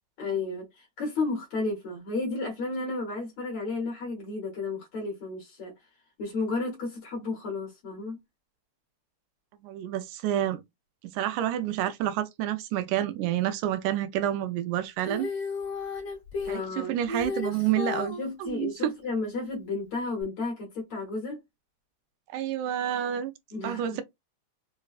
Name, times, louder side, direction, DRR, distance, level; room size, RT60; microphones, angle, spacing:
voice 1, 0.2-5.7 6.2-8.2 16.4-16.9 18.2-21.4 23.5-24.0, left 3 dB, 65° left, 1.4 m, -32 dB
voice 2, 9.6-10.6 11.1-15.3 16.5-18.2 18.4-18.7 22.3-23.3 23.6-24.0, right 11 dB, 85° right, 2.0 m, -29 dB
Female singing, 15.0-18.3 20.2-20.3, left 3 dB, 45° left, 1.1 m, -33 dB
4.8 x 2.1 x 2.3 m
omnidirectional pair, 3.5 m